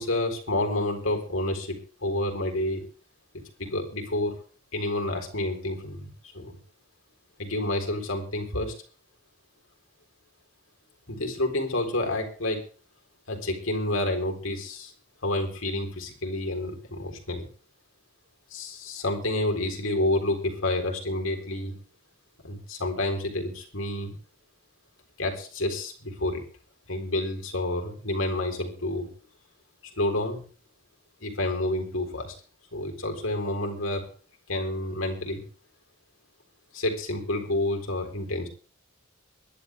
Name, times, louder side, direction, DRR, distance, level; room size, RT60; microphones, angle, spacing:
voice 1, 0.0-2.8 3.6-4.4 4.7-6.6 7.4-8.7 11.1-12.6 13.3-14.9 15.2-17.5 18.5-21.7 22.4-24.1 25.2-26.4 26.9-29.1 30.0-30.4 31.2-32.3 32.7-34.1 34.5-35.4 36.7-38.5, left 1 dB, 80° left, 3 dB, 4.0 m, -29 dB
23.0 x 10.5 x 3.5 m, 0.39 s
head